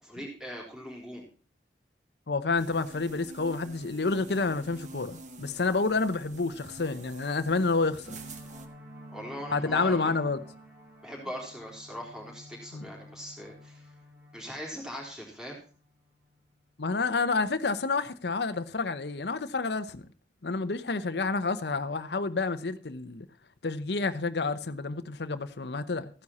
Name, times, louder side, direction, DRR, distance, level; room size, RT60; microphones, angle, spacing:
voice 1, 0.0-1.2 9.1-10.2 11.0-13.9 14.3-15.6, equal, 5° right, 3.7 m, -40 dB
voice 2, 2.3-8.2 9.5-10.4 12.7-12.8 16.8-20.0 20.4-23.3 23.6-26.1, left 3 dB, 70° left, 0.8 m, -29 dB
sound 1, 2.6-8.7, right 2 dB, 45° right, 1.5 m, -48 dB
sound 2, 8.0-16.4, equal, 70° right, 6.0 m, -50 dB
14.5 x 9.7 x 4.1 m
head